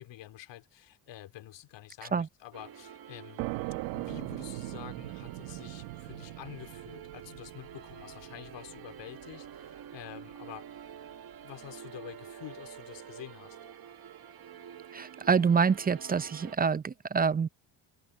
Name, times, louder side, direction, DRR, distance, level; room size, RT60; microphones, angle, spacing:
voice 1, 0.0-3.4 3.9-10.8 11.4-13.6, left 14 dB, 70° left, 3.0 m, -48 dB
sound 1, 2.5-16.6, right 9 dB, 55° right, 2.1 m, -48 dB
sound 2, 3.4-10.8, right 20 dB, 90° right, 1.6 m, -41 dB
voice 2, 14.9-17.5, right 5 dB, 20° right, 0.5 m, -26 dB
supercardioid pair, 75°, 45 cm